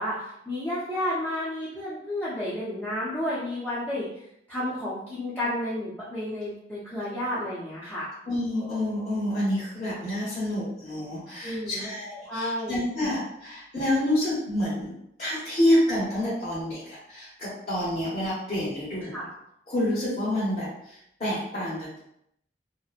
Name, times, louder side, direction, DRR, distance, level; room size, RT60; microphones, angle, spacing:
voice 1, 0.0-4.1 4.5-8.1 11.4-11.9 12.3-12.8 19.0-19.3, left 1 dB, 10° left, -10 dB, 0.5 m, -31 dB
voice 2, 8.3-14.9 15.2-19.2 19.7-22.0, left 1 dB, 40° left, -10 dB, 0.9 m, -28 dB
2.8 x 2.0 x 2.4 m, 0.77 s
head